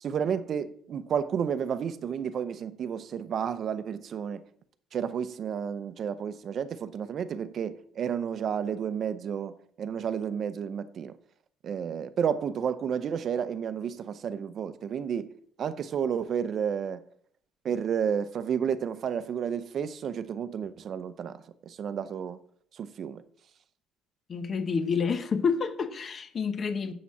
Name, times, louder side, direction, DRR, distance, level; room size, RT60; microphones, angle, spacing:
voice 1, 0.0-4.4 4.9-11.1 11.6-15.3 15.6-17.0 17.6-22.4 22.7-23.2, right 7 dB, 40° right, 0.7 m, -31 dB
voice 2, 24.3-26.9, left 5 dB, 30° left, 0.9 m, -28 dB
7.5 x 7.0 x 7.3 m
cardioid pair, 160°, 0 cm